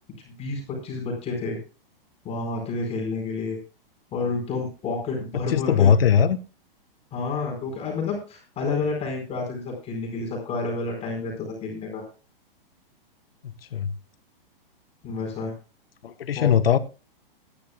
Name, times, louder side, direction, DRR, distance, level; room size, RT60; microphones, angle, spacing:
voice 1, 0.2-1.6 2.2-3.6 4.1-5.9 7.1-12.0 15.0-15.5 16.3-16.5, left 3 dB, 20° left, 4.3 m, -29 dB
voice 2, 5.5-6.4 13.4-13.9 16.0-16.8, left 8 dB, 80° left, 1.0 m, -20 dB
19.5 x 10.5 x 2.2 m
hypercardioid pair, 135°, 29 cm